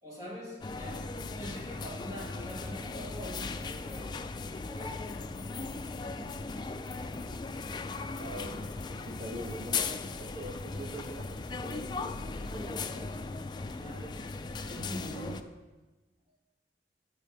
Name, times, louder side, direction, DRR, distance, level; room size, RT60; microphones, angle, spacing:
voice 1, 0.0-6.4 13.7-14.3 14.6-15.7, equal, 20° right, -5 dB, 2.1 m, -45 dB
sound 1, 0.6-15.4, left 4 dB, 25° left, 0.3 m, -38 dB
voice 2, 7.9-8.6 8.9-13.2 13.8-14.1, equal, 55° right, 0 dB, 1.4 m, -44 dB
6.6 x 5.3 x 6.4 m, 1.1 s
head